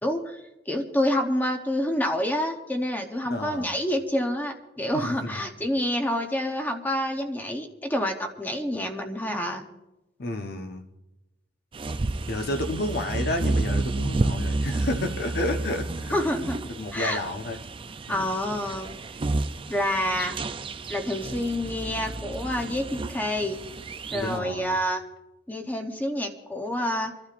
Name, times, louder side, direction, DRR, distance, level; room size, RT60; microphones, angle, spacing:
voice 1, 0.0-0.4 0.7-9.6 16.1-16.6 16.9-17.2 18.1-18.9 19.7-20.4 20.9-23.6 24.1-25.0 25.5-27.1, left 1 dB, 10° left, 4 dB, 0.8 m, -28 dB
voice 2, 3.3-3.7 4.9-5.4 10.2-10.9 12.3-16.1 16.7-17.6 18.1-18.3 24.1-24.8, left 1 dB, 55° left, 5 dB, 1.0 m, -31 dB
sound 1, 11.7-24.4, right 2 dB, 25° right, 0.4 m, -31 dB
29.0 x 12.0 x 2.5 m, 0.97 s
head